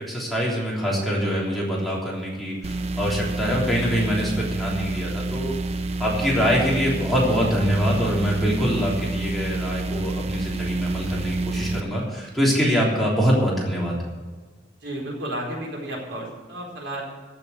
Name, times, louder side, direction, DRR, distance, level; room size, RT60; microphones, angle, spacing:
voice 1, 0.0-5.6 6.0-14.0, equal, ahead, -5 dB, 3.4 m, -24 dB
sound 1, 2.6-11.8, right 2 dB, 35° right, 0.6 m, -28 dB
voice 2, 14.8-17.0, right 1 dB, 75° right, -2 dB, 4.5 m, -32 dB
15.0 x 7.0 x 8.1 m, 1.4 s
head